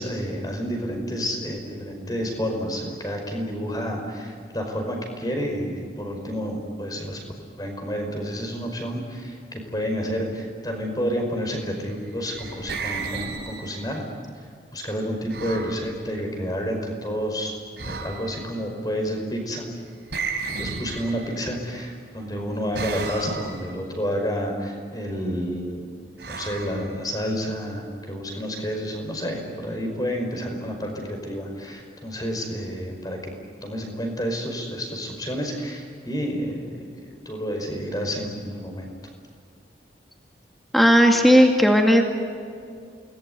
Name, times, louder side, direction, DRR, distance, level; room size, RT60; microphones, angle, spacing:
voice 1, 0.0-7.2 7.6-14.0 14.4-14.5 14.7-17.5 17.8-19.6 20.6-25.9 26.3-33.2 33.6-36.8 37.3-38.9, equal, 20° left, 3 dB, 5.3 m, -30 dB
sound 1, 12.0-14.0 15.3-15.8 17.8-18.5 20.1-21.6 22.7-23.7 26.2-27.4, right 4 dB, 70° right, 3.6 m, -33 dB
voice 2, 40.7-42.0, equal, ahead, 2 dB, 2.3 m, -15 dB
29.0 x 20.5 x 9.6 m, 2.3 s
head